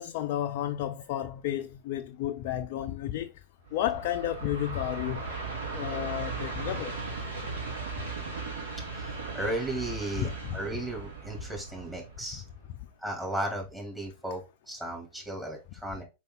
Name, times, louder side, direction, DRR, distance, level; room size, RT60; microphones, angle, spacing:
voice 1, 0.0-3.3 3.7-5.2 5.7-6.9 10.4-10.6, left 12 dB, 50° left, 0.4 m, -32 dB
Train, 3.7-12.9, right 3 dB, 65° right, 1.8 m, -37 dB
voice 2, 8.9-12.4 13.0-16.0, right 1 dB, 10° right, 2.9 m, -35 dB
5.3 x 4.8 x 3.8 m
figure-of-eight pair, 90°, 0 cm